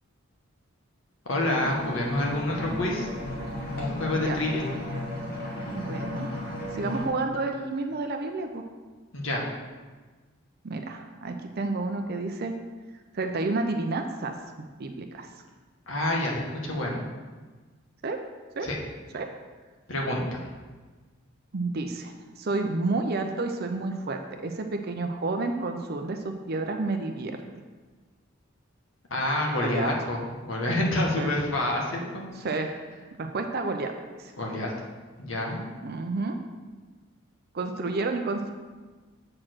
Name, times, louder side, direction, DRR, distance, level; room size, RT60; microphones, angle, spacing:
voice 1, 1.2-3.1 3.8-4.7 9.1-9.4 15.9-17.0 18.6-18.8 19.9-20.5 29.1-32.2 34.4-34.7 35.2-35.6, left 1 dB, 65° left, -2 dB, 1.6 m, -28 dB
sound 1, 1.5-7.1, left 1 dB, 50° left, 1.9 m, -34 dB
voice 2, 5.8-8.6 10.6-12.5 13.1-15.3 18.0-18.2 18.6-18.7 19.1-19.3 21.5-26.2 26.5-27.4 29.6-29.9 31.2-31.3 32.4-32.7 33.2-33.9 34.2-34.3 35.8-36.4 37.5-38.5, right 3 dB, 50° right, 5 dB, 0.6 m, -30 dB
7.5 x 4.5 x 6.1 m, 1.4 s
head